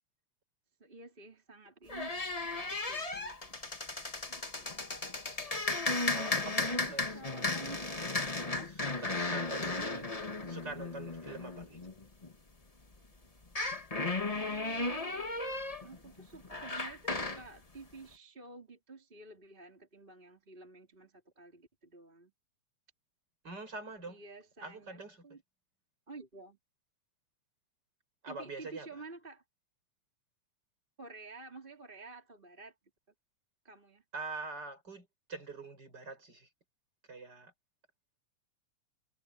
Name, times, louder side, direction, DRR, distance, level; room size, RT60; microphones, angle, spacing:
voice 1, 0.8-3.5 4.4-4.8 6.9-7.8 8.5-8.7 9.6-10.1 14.3-15.3 15.8-22.3 24.0-25.4 26.1-26.6 28.3-29.4 31.0-32.8 33.6-34.0, right 3 dB, 15° right, 3.3 m, -51 dB
sound 1, 1.9-12.3 13.4-17.5, left 2 dB, 35° left, 0.6 m, -35 dB
voice 2, 6.1-7.2 8.7-10.1 10.5-11.8 23.4-24.2 24.6-25.4 28.2-28.9 34.1-36.5 37.1-37.5, right 3 dB, 35° right, 6.5 m, -44 dB
omnidirectional pair, 3.4 m